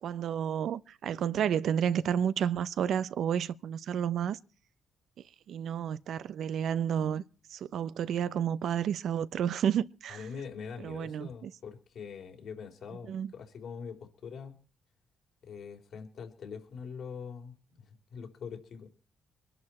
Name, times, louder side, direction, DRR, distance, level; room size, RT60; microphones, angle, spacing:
voice 1, 0.0-4.4 5.5-7.2 7.5-10.2 10.8-11.5 13.1-13.3, right 9 dB, 70° right, 0.6 m, -31 dB
voice 2, 10.1-14.6 15.4-18.9, left 6 dB, 65° left, 3.5 m, -43 dB
22.5 x 11.0 x 4.3 m
cardioid pair, 90°, 0 cm